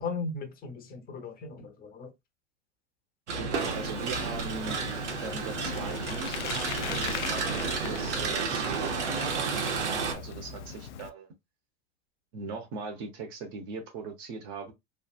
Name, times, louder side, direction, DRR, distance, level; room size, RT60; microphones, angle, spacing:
voice 1, 0.0-2.1, left 4 dB, 25° left, 0.8 m, -37 dB
voice 2, 3.3-4.8 5.2-9.6 9.9-11.3 12.3-14.7, right 4 dB, 50° right, 0.9 m, -40 dB
sound 1, 3.3-10.1, right 5 dB, 85° right, 0.9 m, -31 dB
Bicycle, 3.5-11.1, left 8 dB, 85° left, 0.5 m, -40 dB
3.2 x 2.3 x 2.4 m
hypercardioid pair, 105°, 34 cm